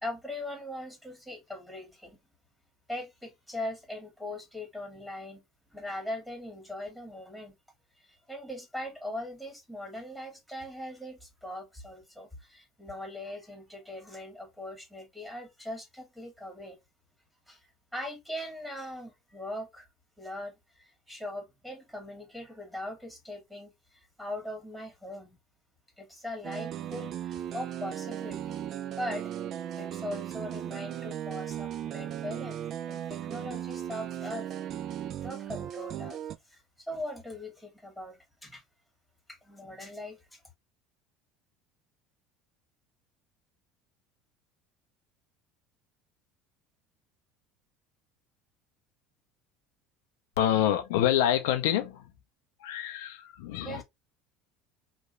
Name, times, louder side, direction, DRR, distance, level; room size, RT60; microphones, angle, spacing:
voice 1, 0.0-2.2 2.9-5.4 5.7-7.5 8.0-16.8 17.5-17.6 17.9-19.9 20.2-25.4 26.0-28.6 29.0-34.7 35.0-36.2 36.5-36.6 36.9-38.6 39.3-40.4 53.6-53.8, left 1 dB, ahead, 1.4 m, -40 dB
sound 1, 26.4-36.4, right 10 dB, 50° right, 0.3 m, -37 dB
voice 2, 50.4-52.1 52.6-53.8, left 11 dB, 75° left, 0.4 m, -27 dB
2.9 x 2.2 x 2.4 m
hypercardioid pair, 75°, 0 cm